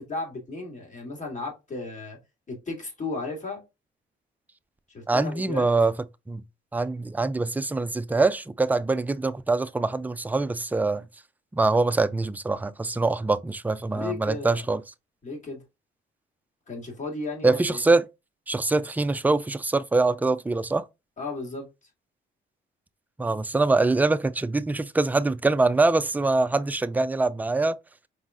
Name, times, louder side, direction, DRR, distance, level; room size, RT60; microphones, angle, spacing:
voice 1, 0.0-2.2 2.5-3.6 4.9-5.7 13.9-14.7 15.2-15.6 16.7-17.8 21.2-21.7, left 3 dB, 40° left, 2.3 m, -34 dB
voice 2, 5.1-5.9 6.3-6.4 6.7-11.0 11.5-14.8 17.4-18.0 18.5-20.8 23.2-27.8, right 3 dB, 10° right, 0.4 m, -24 dB
4.9 x 3.8 x 2.5 m
cardioid pair, 90°, 20 cm